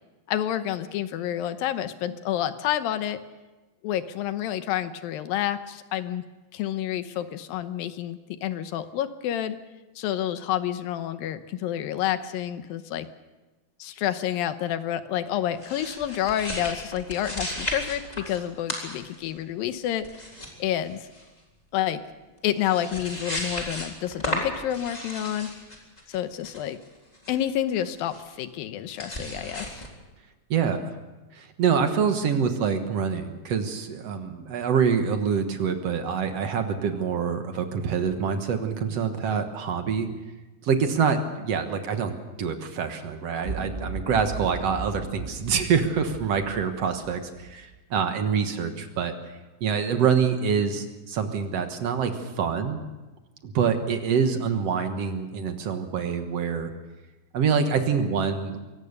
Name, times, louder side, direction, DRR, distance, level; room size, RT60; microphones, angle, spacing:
voice 1, 0.3-3.2 3.8-6.2 6.5-9.6 10.0-13.1 13.8-20.1 20.6-21.1 21.7-22.0 22.4-25.5 26.1-26.8 27.3-29.8, left 11 dB, 85° left, 11 dB, 2.6 m, -29 dB
sound 1, 15.6-18.4 18.7-19.4 20.0-20.5 20.8-21.3 22.3-22.4 22.6-27.4 28.1-28.4 28.9-29.9, left 1 dB, 10° left, 3.5 m, -35 dB
voice 2, 30.5-30.9 31.3-40.1 40.6-49.1 49.6-52.8 53.4-56.7 57.3-58.6, right 6 dB, 55° right, 7 dB, 2.0 m, -26 dB
sound 2, 43.4-47.8, right 3 dB, 15° right, 2.4 m, -37 dB
23.5 x 17.5 x 6.7 m, 1.1 s
omnidirectional pair, 4.2 m